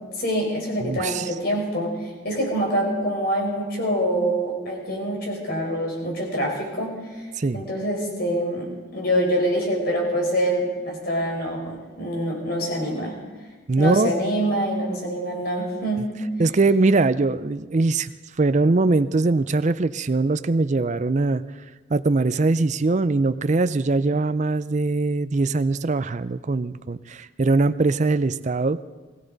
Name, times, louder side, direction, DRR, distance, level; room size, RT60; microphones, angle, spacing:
voice 1, 0.2-2.0 2.2-7.2 7.5-13.2 13.8-16.1 16.5-16.6, equal, 50° left, 0 dB, 4.5 m, -25 dB
voice 2, 0.8-1.3 7.4-7.6 13.7-14.1 16.4-18.1 18.4-21.4 21.9-28.8, right 3 dB, 35° right, 13 dB, 0.4 m, -21 dB
21.0 x 16.0 x 4.0 m, 1.3 s
head